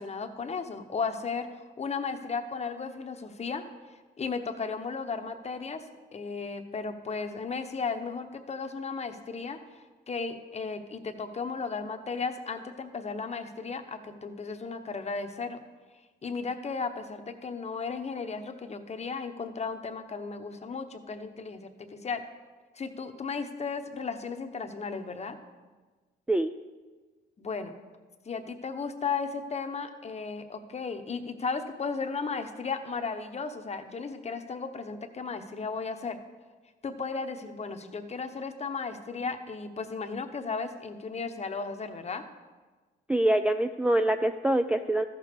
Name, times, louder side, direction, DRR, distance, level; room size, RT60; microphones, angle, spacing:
voice 1, 0.0-1.5 1.8-3.6 4.2-5.9 6.1-15.6 16.2-22.2 22.7-25.4 27.4-27.7 28.2-36.2 36.8-42.2, left 4 dB, 35° left, 6 dB, 0.9 m, -35 dB
voice 2, 43.1-45.0, right 1 dB, 5° right, 5 dB, 0.3 m, -25 dB
14.0 x 6.6 x 3.6 m, 1.3 s
cardioid pair, 90°, 20 cm